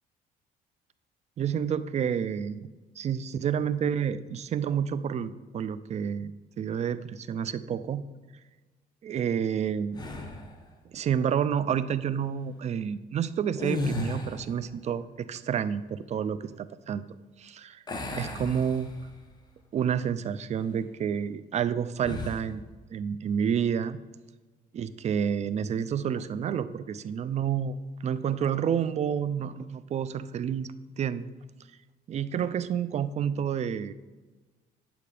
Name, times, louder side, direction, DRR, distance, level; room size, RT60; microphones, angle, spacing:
voice 1, 1.4-2.7 3.0-8.0 9.0-10.0 10.9-17.1 17.4-17.8 18.1-18.9 19.7-22.6 22.9-24.0 24.7-27.8 28.0-31.3 32.1-33.9, right 8 dB, 40° right, 14 dB, 0.5 m, -29 dB
sound 1, 9.9-10.6 13.5-14.6 17.9-19.3 19.8-20.0 22.0-22.5, left 2 dB, 25° left, 1.3 m, -34 dB
8.8 x 6.8 x 5.0 m, 1.3 s
cardioid pair, 110°, 17 cm